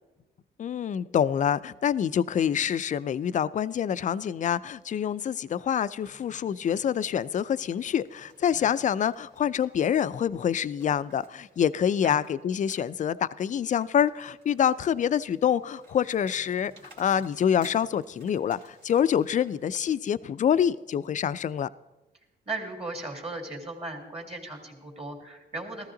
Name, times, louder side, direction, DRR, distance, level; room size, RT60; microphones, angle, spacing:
voice 1, 0.6-16.7 17.0-21.7, left 8 dB, 40° left, 17 dB, 0.4 m, -26 dB
sound 1, 6.0-20.0, right 2 dB, 60° right, 2.7 m, -58 dB
voice 2, 22.5-25.9, right 2 dB, 30° right, 3 dB, 2.4 m, -37 dB
14.5 x 13.5 x 3.8 m, 1.1 s
cardioid pair, 90°, 20 cm